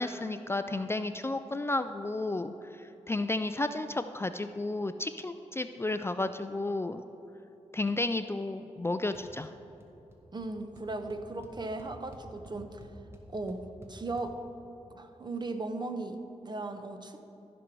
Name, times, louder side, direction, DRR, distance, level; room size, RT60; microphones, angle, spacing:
voice 1, 0.0-7.0 7.7-9.5, left 2 dB, 20° left, 9 dB, 0.4 m, -32 dB
sound 1, 9.1-9.5 9.8-10.2 10.4-10.5 10.8-14.3, right 1 dB, 20° right, 1.5 m, -51 dB
voice 2, 10.3-12.9 13.3-13.6 13.9-14.4 14.9-17.2, right 2 dB, 35° right, 7 dB, 0.9 m, -37 dB
14.0 x 5.2 x 6.1 m, 2.9 s
cardioid pair, 60°, 12 cm